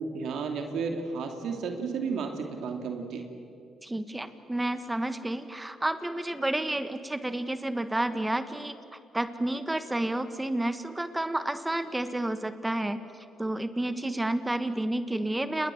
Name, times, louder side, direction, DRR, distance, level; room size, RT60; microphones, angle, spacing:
voice 1, 0.0-3.3, right 5 dB, 75° right, 4 dB, 2.7 m, -32 dB
voice 2, 3.8-13.0 13.4-15.7, right 1 dB, 10° right, 10 dB, 1.4 m, -30 dB
29.5 x 20.0 x 7.8 m, 2.4 s
cardioid pair, 90°, 0 cm